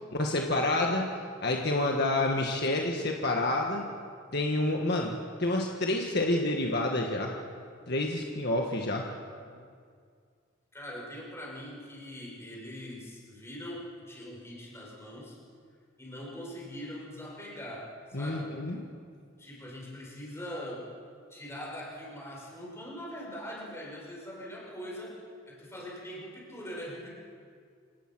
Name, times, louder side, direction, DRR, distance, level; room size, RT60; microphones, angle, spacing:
voice 1, 0.1-1.1 1.4-3.8 4.3-7.3 7.9-9.1 18.1-18.9, left 2 dB, 55° left, 1 dB, 1.6 m, -28 dB
voice 2, 10.7-15.4 16.0-18.5 19.4-20.9 21.3-27.1, equal, 15° left, -4 dB, 6.4 m, -42 dB
27.0 x 18.0 x 6.3 m, 2.1 s
head